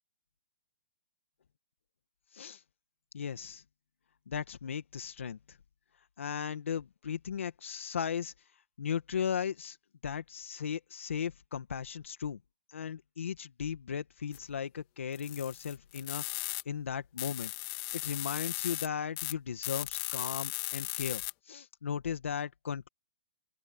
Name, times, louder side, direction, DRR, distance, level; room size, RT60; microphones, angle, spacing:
voice 1, 3.1-3.6 4.3-5.6 6.2-8.3 8.8-9.8 10.0-12.4 12.7-17.5 17.9-22.9, left 7 dB, 80° left, 1.8 m, -36 dB
sound 1, 14.3-14.4 15.1-16.6 17.2-18.9 19.2-19.3 19.6-21.3, left 22 dB, 30° left, 2.0 m, -37 dB
open air
hypercardioid pair, 160°, 7 cm